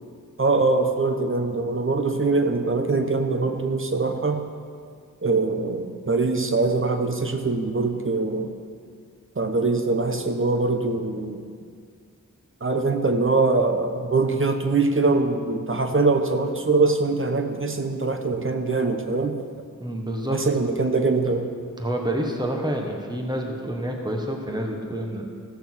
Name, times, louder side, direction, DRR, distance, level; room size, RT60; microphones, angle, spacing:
voice 1, 0.4-4.4 5.2-8.5 9.4-11.4 12.6-19.4 20.3-21.5, right 3 dB, 40° right, 6 dB, 1.0 m, -23 dB
voice 2, 19.8-20.4 21.3-21.4 21.8-25.3, right 1 dB, 15° right, 1 dB, 1.4 m, -28 dB
15.0 x 6.7 x 6.2 m, 2.1 s
wide cardioid pair, 75°, 32 cm